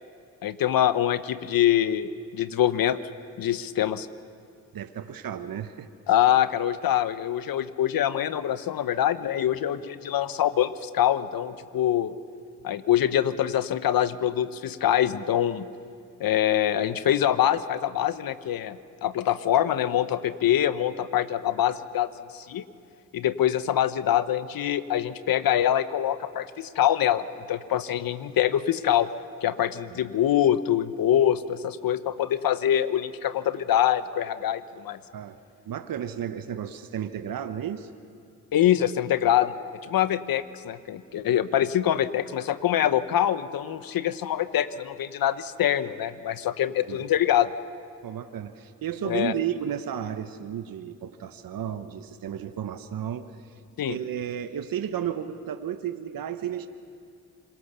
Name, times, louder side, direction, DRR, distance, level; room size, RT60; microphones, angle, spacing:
voice 1, 0.4-3.0 3.4-4.1 6.1-12.1 12.6-15.7 16.2-22.6 23.1-29.1 29.4-35.0 38.5-39.5 39.8-47.5 49.0-49.3 53.8-54.0, left 11 dB, 75° left, 13 dB, 1.0 m, -24 dB
voice 2, 4.7-5.9 35.1-35.4 35.6-37.9 41.3-41.4 46.9-47.1 48.0-53.3 53.9-56.7, right 9 dB, 70° right, 9 dB, 1.1 m, -33 dB
26.0 x 22.5 x 6.8 m, 2.3 s
supercardioid pair, 50°, 36 cm